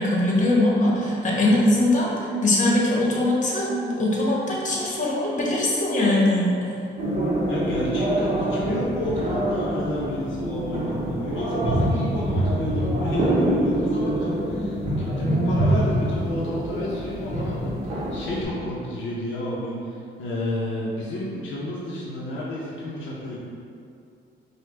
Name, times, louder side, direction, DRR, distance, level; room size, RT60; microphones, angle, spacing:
voice 1, 0.0-6.5, left 1 dB, 40° left, -4 dB, 1.1 m, -21 dB
sound 1, 7.0-18.5, right 1 dB, 35° right, 0.9 m, -25 dB
voice 2, 7.5-23.4, left 1 dB, 75° left, -6 dB, 0.7 m, -31 dB
5.0 x 2.3 x 3.3 m, 2.5 s
cardioid pair, 90°, 20 cm